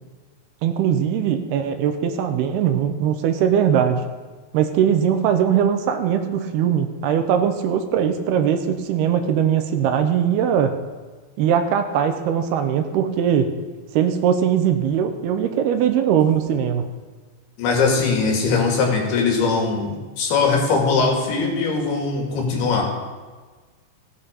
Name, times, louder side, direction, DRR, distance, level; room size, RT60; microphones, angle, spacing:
voice 1, 0.6-4.0 4.5-10.8 11.4-13.5 13.9-16.9, right 8 dB, 90° right, 7 dB, 3.0 m, -20 dB
voice 2, 17.6-22.9, left 4 dB, 75° left, 1 dB, 4.2 m, -20 dB
17.5 x 8.8 x 5.2 m, 1.4 s
omnidirectional pair, 4.6 m